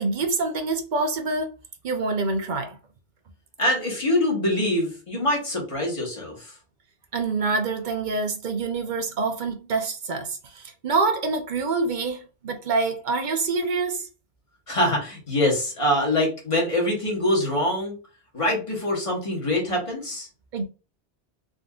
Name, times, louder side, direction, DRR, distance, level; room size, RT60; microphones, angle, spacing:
voice 1, 0.0-1.5 1.8-2.8 7.1-14.1 20.5-20.6, right 3 dB, 55° right, 0.6 m, -26 dB
voice 2, 3.6-6.6 14.7-17.9 18.3-20.3, left 1 dB, 30° left, 1.2 m, -24 dB
3.6 x 2.6 x 2.3 m
omnidirectional pair, 1.1 m